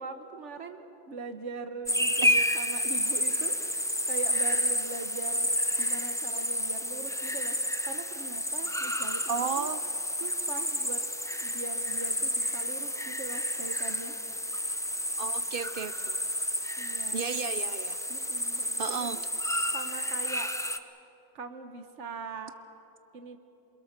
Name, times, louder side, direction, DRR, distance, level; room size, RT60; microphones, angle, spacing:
voice 1, 0.0-5.5 5.8-7.6 7.8-9.7 10.2-11.0 11.4-14.2 16.8-17.2 18.1-19.3 19.7-20.5 21.3-22.5 23.1-23.4, right 4 dB, 90° right, 7 dB, 1.5 m, -41 dB
sound 1, 1.9-20.8, left 1 dB, 5° left, 0.6 m, -30 dB
voice 2, 9.3-9.8 15.2-16.2 17.1-18.0 18.8-19.2, right 6 dB, 55° right, 12 dB, 0.8 m, -33 dB
27.5 x 22.0 x 6.6 m, 2.8 s
omnidirectional pair, 1.2 m